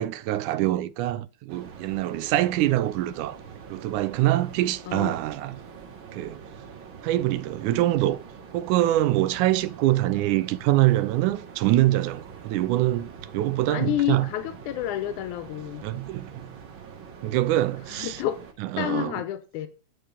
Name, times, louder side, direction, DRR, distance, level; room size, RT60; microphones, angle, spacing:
voice 1, 0.0-3.4 3.7-5.6 6.1-6.4 7.0-8.2 8.5-14.3 15.8-16.5 17.2-18.2 18.7-19.1, right 15 dB, 80° right, 2.1 m, -24 dB
sound 1, 1.5-18.5, right 6 dB, 45° right, 2.0 m, -44 dB
voice 2, 13.7-15.9 17.9-18.4 18.8-19.7, left 12 dB, 80° left, 2.4 m, -29 dB
10.5 x 4.7 x 8.1 m
omnidirectional pair, 3.6 m